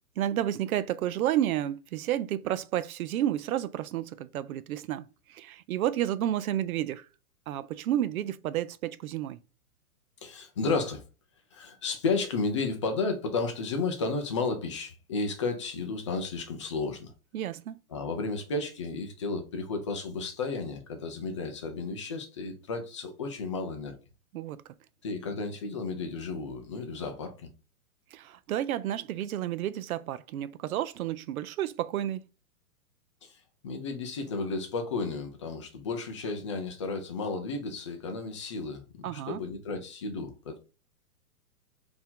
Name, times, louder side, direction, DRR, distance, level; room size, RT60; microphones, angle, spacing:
voice 1, 0.2-7.1 7.5-9.4 17.3-17.8 24.3-24.6 28.1-32.2 39.0-39.4, right 12 dB, 65° right, 0.6 m, -31 dB
voice 2, 10.2-11.0 11.5-17.1 17.9-23.9 25.0-27.5 33.2-40.6, left 3 dB, 20° left, 0.3 m, -33 dB
4.3 x 2.8 x 3.6 m
hypercardioid pair, 140°, 46 cm